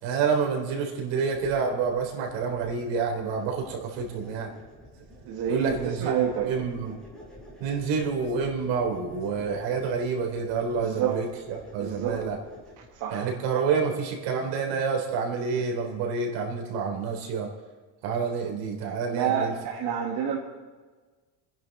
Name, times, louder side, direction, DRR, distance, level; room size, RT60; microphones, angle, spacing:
voice 1, 0.0-4.5 5.5-6.2 6.5-6.9 7.6-12.4 13.1-17.5 18.0-19.5, right 5 dB, 80° right, 1 dB, 3.7 m, -28 dB
sound 1, 1.3-13.0, equal, ahead, 5.2 m, -49 dB
voice 2, 5.3-6.6 10.8-11.2 11.8-12.2 12.8-13.3 19.1-20.4, right 8 dB, 65° right, -2 dB, 2.1 m, -28 dB
30.0 x 10.0 x 4.1 m, 1.3 s
cardioid pair, 140°, 43 cm